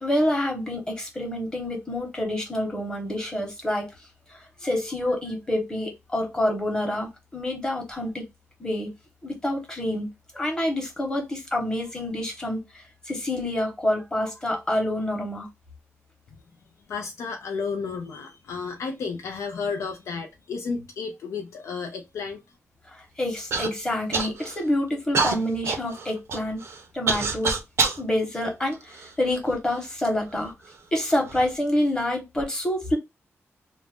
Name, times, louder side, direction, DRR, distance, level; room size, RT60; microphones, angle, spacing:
voice 1, 0.0-3.9 4.3-8.2 8.6-8.9 9.2-10.1 10.3-15.5 22.9-26.6 26.9-27.6 28.0-30.5 30.9-33.0, left 1 dB, 15° left, 0.9 m, -27 dB
voice 2, 16.9-22.4, left 5 dB, 85° left, 0.4 m, -32 dB
Human voice / Cough, 23.5-23.7 24.1-24.6 25.1-28.0 28.7-29.6 30.3-30.4 31.1-31.5, right 4 dB, 65° right, 0.5 m, -27 dB
2.4 x 2.1 x 3.4 m
wide cardioid pair, 155°, 5 cm